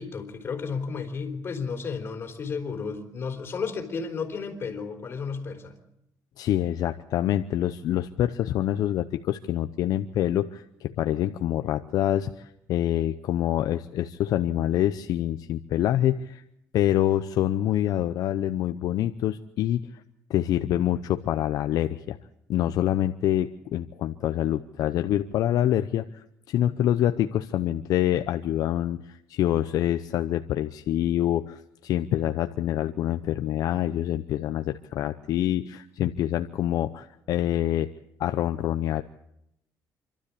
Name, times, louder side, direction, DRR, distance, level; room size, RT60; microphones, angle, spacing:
voice 1, 0.0-5.8, left 5 dB, 35° left, 4 dB, 3.7 m, -33 dB
voice 2, 6.4-16.4 16.7-20.0 20.3-22.2 22.5-37.9 38.2-39.0, left 12 dB, 65° left, 8 dB, 0.7 m, -26 dB
27.5 x 12.5 x 8.5 m, 0.78 s
cardioid pair, 140°, 7 cm